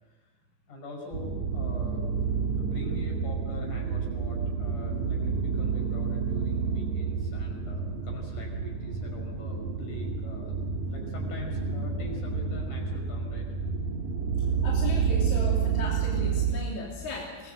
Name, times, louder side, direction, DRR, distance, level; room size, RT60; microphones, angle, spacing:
voice 1, 0.7-2.1 2.6-10.6 10.9-13.5, left 3 dB, 85° left, 0 dB, 6.8 m, -44 dB
sound 1, 1.1-16.5, right 6 dB, 75° right, 3.7 m, -29 dB
voice 2, 14.6-17.5, left 2 dB, 70° left, -4 dB, 4.6 m, -37 dB
24.0 x 19.0 x 8.1 m, 1.3 s
omnidirectional pair, 3.5 m